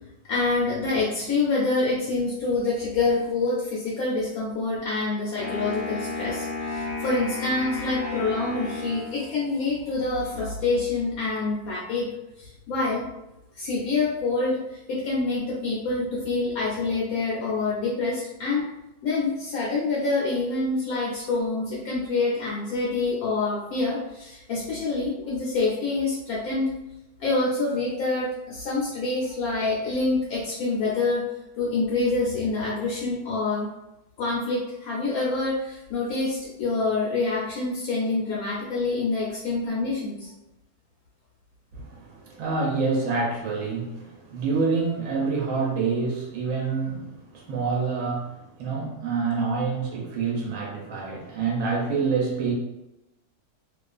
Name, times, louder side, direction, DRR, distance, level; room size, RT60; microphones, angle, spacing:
voice 1, 0.3-12.1 12.4-13.1 13.6-18.6 19.0-26.7 27.2-31.2 31.6-33.7 34.2-40.3, left 3 dB, 70° left, -5 dB, 1.0 m, -26 dB
Wind instrument woodwind instrument, 5.4-9.6, left 3 dB, 40° left, 0.8 m, -33 dB
voice 2, 41.7-52.5, right 4 dB, 65° right, -2 dB, 0.8 m, -27 dB
2.4 x 2.3 x 2.3 m, 0.92 s
omnidirectional pair, 1.7 m